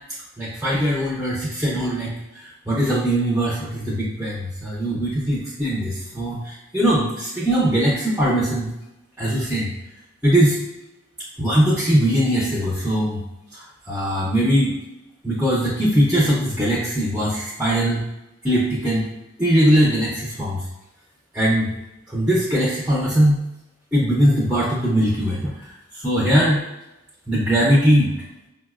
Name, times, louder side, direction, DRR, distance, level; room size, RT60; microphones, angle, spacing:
voice 1, 0.4-8.7 9.2-9.7 10.2-10.6 11.4-13.2 13.5-14.7 15.2-18.1 18.4-19.1 19.4-20.6 21.3-21.8 22.1-23.4 23.9-26.7 27.3-28.1, right 1 dB, 5° right, -6 dB, 0.4 m, -20 dB
4.9 x 2.0 x 2.3 m, 0.96 s
head